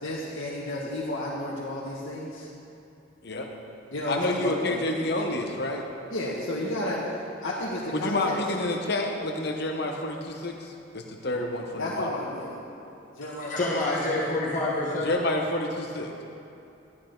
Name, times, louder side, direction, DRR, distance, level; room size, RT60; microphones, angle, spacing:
voice 1, 0.0-2.5 3.9-4.8 6.1-8.4 11.8-12.6 13.1-14.2, left 1 dB, 80° left, -7 dB, 1.5 m, -32 dB
voice 2, 4.1-5.8 7.9-12.1 14.3-14.4 15.0-16.1, left 2 dB, 55° left, 2 dB, 1.0 m, -29 dB
voice 3, 13.3-15.1, left 2 dB, 40° left, -5 dB, 1.4 m, -27 dB
12.5 x 11.0 x 3.9 m, 2.8 s
head